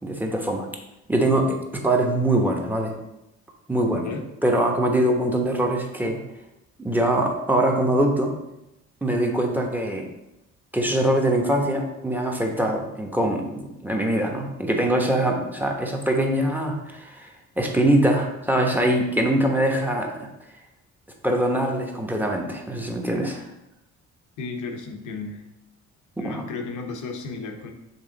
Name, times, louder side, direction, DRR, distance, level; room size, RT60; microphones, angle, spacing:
voice 1, 0.0-0.7 1.1-2.9 3.7-4.1 4.4-6.2 6.8-8.3 9.0-10.1 10.7-20.3 21.2-23.4 26.2-26.4, right 1 dB, 5° right, 1 dB, 1.1 m, -23 dB
voice 2, 24.4-25.4 26.2-27.7, left 4 dB, 80° left, 4 dB, 1.0 m, -33 dB
7.2 x 3.4 x 4.0 m, 0.90 s
cardioid pair, 90°, 30 cm